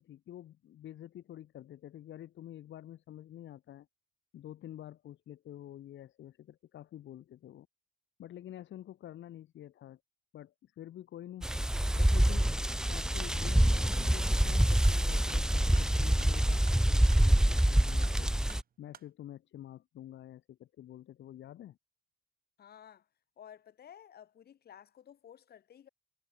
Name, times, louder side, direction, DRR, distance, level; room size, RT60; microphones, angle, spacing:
voice 1, 0.0-3.9 4.3-7.7 8.2-10.0 10.3-11.5 12.0-12.5 12.9-18.3 18.8-21.8, left 12 dB, 85° left, 3.8 m, -48 dB
sound 1, 11.4-18.6, right 1 dB, 5° right, 0.9 m, -26 dB
sound 2, 13.9-19.1, right 8 dB, 50° right, 6.6 m, -56 dB
voice 2, 22.6-23.1 23.4-25.9, left 9 dB, 55° left, 7.1 m, -54 dB
wide cardioid pair, 165°, 19 cm